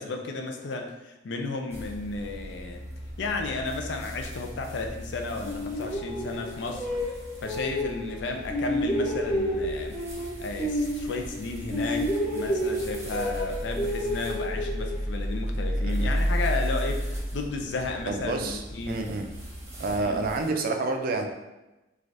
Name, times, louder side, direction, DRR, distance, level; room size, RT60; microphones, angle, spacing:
voice 1, 0.0-2.8 3.2-7.0 7.4-10.0 10.4-19.2 20.0-20.2, left 3 dB, 75° left, 4 dB, 0.4 m, -33 dB
sound 1, 1.7-20.5, equal, 15° right, 0.7 m, -35 dB
sound 2, 5.4-8.2 8.5-11.4 11.7-15.2, equal, 15° left, 1.0 m, -30 dB
voice 2, 15.8-16.2 18.1-18.6 18.9-19.3 19.8-21.3, right 3 dB, 55° right, 4 dB, 0.3 m, -29 dB
3.2 x 2.4 x 2.5 m, 1.0 s
head